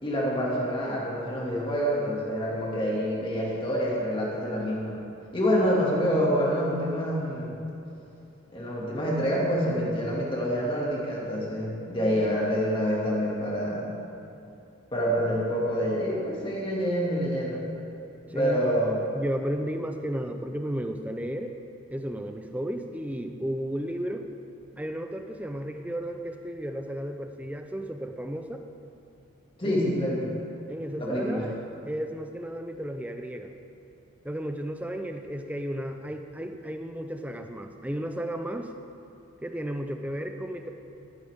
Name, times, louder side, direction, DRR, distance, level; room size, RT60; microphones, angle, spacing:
voice 1, 0.0-5.0 5.3-7.6 8.5-13.9 14.9-17.6 18.3-19.0 29.6-30.3 31.0-31.5, equal, 25° left, -5 dB, 2.2 m, -27 dB
voice 2, 18.3-18.6 19.1-21.5 21.9-24.3 24.8-28.6 29.6-29.8 30.7-31.5 31.9-33.5 34.2-38.7 39.4-40.7, equal, 5° right, 6 dB, 0.5 m, -33 dB
13.5 x 12.0 x 3.6 m, 2.8 s
head